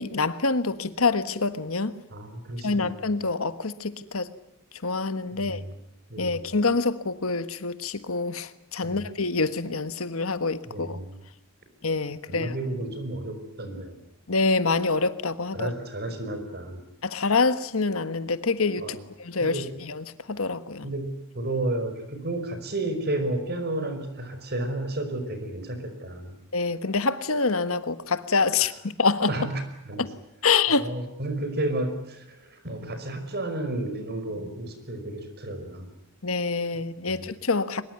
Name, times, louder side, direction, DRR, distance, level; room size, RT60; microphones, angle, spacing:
voice 1, 0.0-1.9 2.6-4.3 4.8-5.6 6.2-11.0 11.8-12.5 14.3-15.7 17.0-20.9 26.5-28.7 29.0-29.3 30.0-30.1 30.4-30.9 36.2-37.8, left 4 dB, 70° left, 1.4 m, -26 dB
voice 2, 2.1-2.9 5.3-5.7 6.1-6.5 8.8-9.0 10.7-11.2 12.3-14.0 15.5-16.8 18.8-19.0 19.4-19.7 20.8-26.3 29.3-30.1 30.7-35.9 37.1-37.2, right 1 dB, 45° right, 5.2 m, -32 dB
24.0 x 22.0 x 9.5 m
head